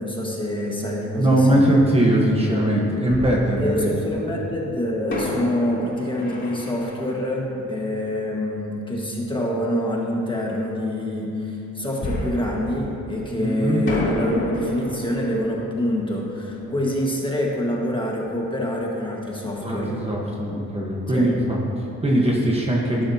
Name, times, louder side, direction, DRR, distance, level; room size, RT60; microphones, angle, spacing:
voice 1, 0.0-1.8 3.6-20.0 21.1-21.3, left 1 dB, 15° left, -3 dB, 1.6 m, -26 dB
voice 2, 1.2-4.3 13.4-13.8 19.6-23.0, right 1 dB, 20° right, -3 dB, 1.2 m, -21 dB
Fireworks, 1.8-1.9 3.1-4.2 5.1-8.6 12.0-13.4 13.9-18.4 18.7-18.8 19.3-19.5, left 1 dB, 35° left, 2.9 m, -32 dB
18.0 x 11.0 x 2.8 m, 2.8 s
wide cardioid pair, 170°, 32 cm